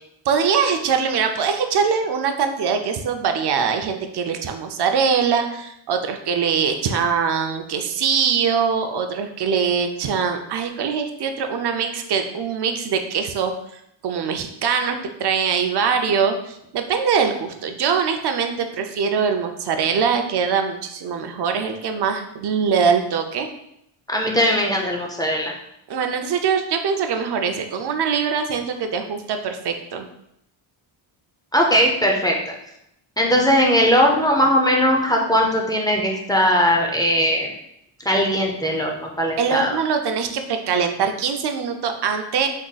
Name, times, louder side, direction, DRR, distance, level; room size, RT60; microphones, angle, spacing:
voice 1, 0.3-13.5 14.0-23.5 25.9-30.1 39.4-42.5, right 6 dB, 55° right, 6 dB, 0.5 m, -22 dB
voice 2, 24.1-25.6 31.5-32.5 33.2-37.5 38.1-39.8, equal, 10° left, 0 dB, 0.3 m, -19 dB
3.6 x 2.2 x 3.9 m, 0.78 s
wide cardioid pair, 145°, 50 cm